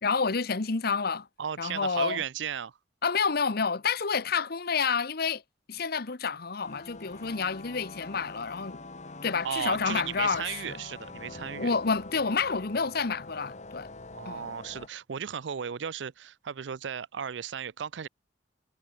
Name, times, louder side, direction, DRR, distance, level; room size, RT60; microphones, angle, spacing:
voice 1, 0.0-1.3 1.6-2.2 3.0-5.4 5.7-8.8 9.2-10.8 11.6-13.9 14.2-14.5, left 5 dB, 55° left, 1.0 m, -29 dB
voice 2, 1.4-2.7 9.4-11.7 14.1-18.1, right 7 dB, 75° right, 0.5 m, -35 dB
sound 1, 6.6-14.9, left 3 dB, 40° left, 2.5 m, -45 dB
head